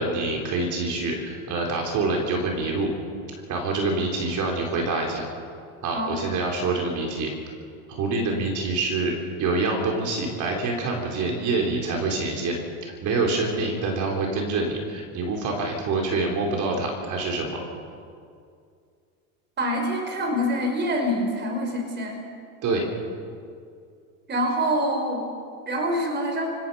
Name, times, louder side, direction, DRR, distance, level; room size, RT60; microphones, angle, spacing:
voice 1, 0.0-2.9 3.5-5.3 5.8-7.3 7.9-17.6 22.6-22.8, right 3 dB, 45° right, 1 dB, 4.3 m, -26 dB
voice 2, 19.6-22.2 24.3-25.3 25.7-26.5, equal, 25° right, 3 dB, 4.4 m, -25 dB
28.5 x 17.0 x 5.7 m, 2.3 s
supercardioid pair, 125°, 42 cm